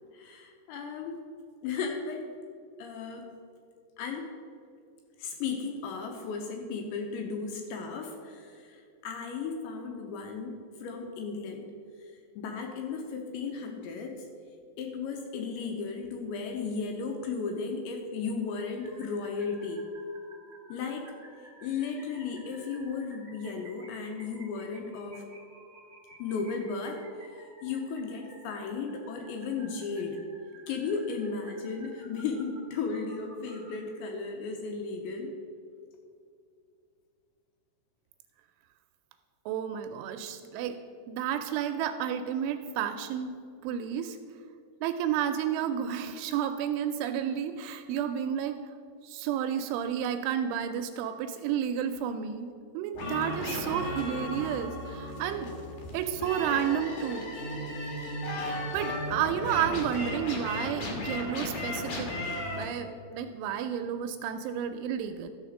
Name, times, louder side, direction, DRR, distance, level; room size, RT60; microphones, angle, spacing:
voice 1, 0.1-1.2 1.6-2.3 2.8-3.3 4.0-4.3 5.2-11.7 12.4-14.3 14.8-19.8 20.7-21.1 21.6-25.2 26.2-27.0 27.3-30.2 30.7-35.3, left 5 dB, 80° left, 3 dB, 2.8 m, -35 dB
sound 1, 18.8-33.8, right 2 dB, 5° right, 1.2 m, -54 dB
voice 2, 39.5-40.8 41.1-43.4 43.6-44.2 44.8-48.6 49.0-52.5 52.7-55.5 55.9-57.3 58.5-65.3, right 9 dB, 85° right, 7 dB, 2.8 m, -31 dB
sound 2, 52.9-62.6, left 1 dB, 60° left, 2.1 m, -35 dB
13.5 x 5.0 x 6.3 m, 2.4 s
omnidirectional pair, 5.7 m